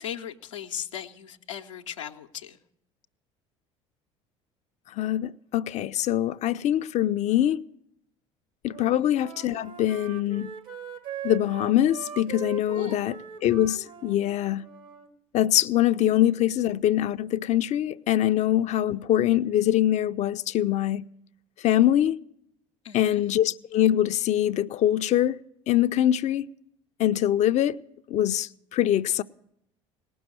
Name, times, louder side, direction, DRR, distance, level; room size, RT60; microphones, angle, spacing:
voice 1, 0.0-2.6 9.0-9.1 12.7-13.2 22.8-23.2, left 9 dB, 90° left, 0.6 m, -38 dB
voice 2, 5.0-7.6 8.6-10.5 11.2-13.1 13.4-14.6 15.3-21.0 21.6-22.2 22.9-25.4 25.7-26.5 27.0-27.8 28.1-29.2, left 12 dB, 50° left, 0.4 m, -23 dB
Wind instrument woodwind instrument, 8.7-15.1, right 8 dB, 70° right, 1.3 m, -41 dB
18.5 x 6.2 x 9.5 m
hypercardioid pair, 65°, 16 cm